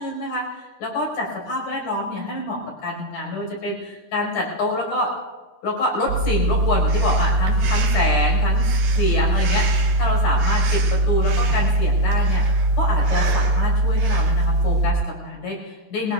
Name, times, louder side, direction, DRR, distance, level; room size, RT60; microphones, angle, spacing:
voice 1, 0.0-5.1 5.6-8.7 9.0-12.4 12.8-16.1, left 2 dB, 70° left, -2 dB, 6.5 m, -27 dB
sound 1, 6.1-14.9, right 1 dB, 50° right, 4.0 m, -20 dB
Breathing, 6.9-14.5, right 5 dB, 70° right, 2.9 m, -34 dB
22.0 x 21.0 x 2.4 m, 1.2 s
omnidirectional pair, 4.0 m